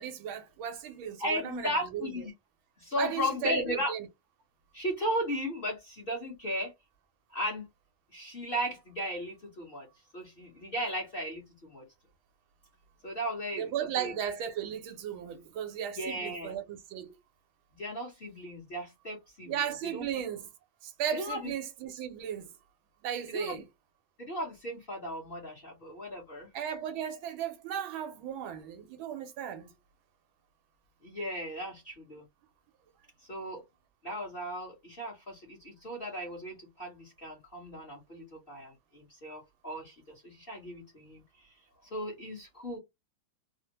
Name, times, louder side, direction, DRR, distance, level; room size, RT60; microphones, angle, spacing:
voice 1, 0.0-2.1 3.0-4.1 13.6-17.2 19.5-20.5 20.8-22.5 23.0-23.6 26.5-29.7, right 9 dB, 80° right, 1.4 m, -36 dB
voice 2, 1.2-2.3 2.8-3.9 4.7-6.7 7.3-7.7 8.1-9.9 10.1-11.8 13.0-14.1 15.9-16.5 17.8-20.2 21.1-21.5 23.3-23.6 24.2-26.5 31.0-32.2 33.3-33.6 34.0-41.5 41.8-42.8, equal, 35° left, 0.9 m, -36 dB
3.4 x 2.1 x 2.8 m
omnidirectional pair, 2.3 m